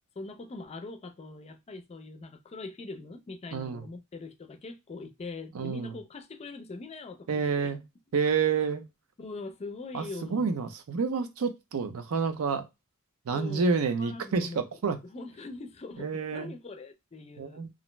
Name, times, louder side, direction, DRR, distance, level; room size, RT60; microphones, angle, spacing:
voice 1, 0.2-7.8 9.2-10.5 13.3-17.7, left 3 dB, 30° left, 0.4 m, -42 dB
voice 2, 3.5-3.8 5.5-5.9 7.3-7.8 8.1-8.8 9.9-12.7 13.3-15.0 16.0-16.5 17.4-17.7, right 5 dB, 70° right, 0.5 m, -29 dB
2.4 x 2.1 x 3.0 m
head